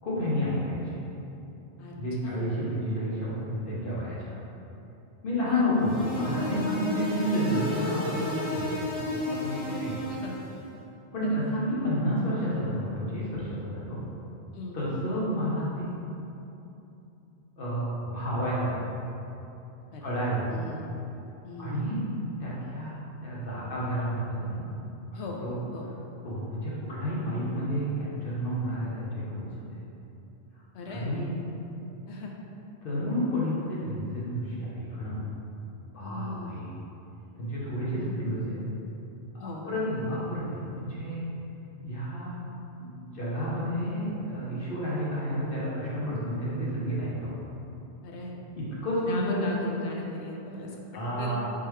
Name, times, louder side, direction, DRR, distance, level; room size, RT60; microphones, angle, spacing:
voice 1, 0.0-1.0 2.0-4.4 5.2-10.0 11.1-14.0 14.7-15.9 17.6-19.0 20.0-20.5 21.6-22.0 22.4-23.0 23.2-24.7 25.1-25.5 26.2-29.7 30.9-31.3 32.8-35.2 35.9-36.7 37.4-38.6 39.3-41.2 41.8-42.3 42.8-47.4 48.6-49.4 50.9-51.5, equal, 55° left, -7 dB, 1.0 m, -30 dB
voice 2, 5.4-5.7 6.8-6.9 9.6-10.3 11.2-11.4 14.5-15.0 19.9-20.1 20.5-20.8 21.4-21.8 25.1-25.4 25.7-25.9 30.7-31.2 32.1-32.3 36.0-36.6 39.4-39.7 48.0-48.3 49.1-50.8 51.2-51.4, left 2 dB, 75° left, -1 dB, 0.8 m, -39 dB
sound 1, 5.8-10.6, left 1 dB, 5° right, 0.9 m, -32 dB
3.6 x 3.2 x 3.1 m, 2.9 s
omnidirectional pair, 1.2 m